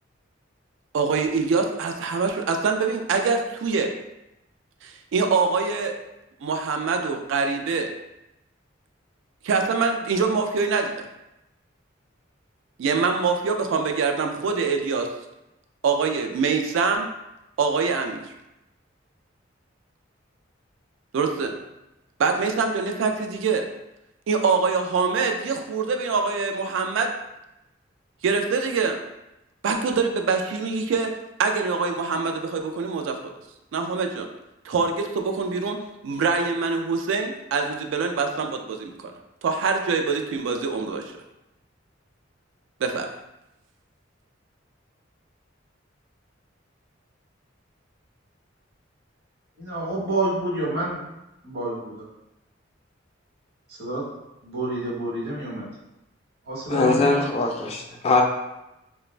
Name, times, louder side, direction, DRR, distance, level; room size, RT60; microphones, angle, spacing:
voice 1, 0.9-3.9 4.8-6.0 6.4-7.9 9.4-11.1 12.8-15.1 15.8-17.1 17.6-18.3 21.1-21.5 22.2-23.7 24.3-27.1 28.2-29.0 29.6-31.1 31.4-33.2 33.7-34.3 34.6-35.8 36.0-39.1 39.4-41.1 42.8-43.1, right 4 dB, 70° right, 4 dB, 0.3 m, -24 dB
voice 2, 49.6-51.0 51.4-52.1 53.8-54.0 54.4-55.7 56.5-57.3, right 2 dB, 55° right, -6 dB, 1.0 m, -28 dB
voice 3, 56.7-58.2, left 3 dB, 35° left, 1 dB, 0.3 m, -21 dB
2.4 x 2.1 x 3.1 m, 0.92 s
head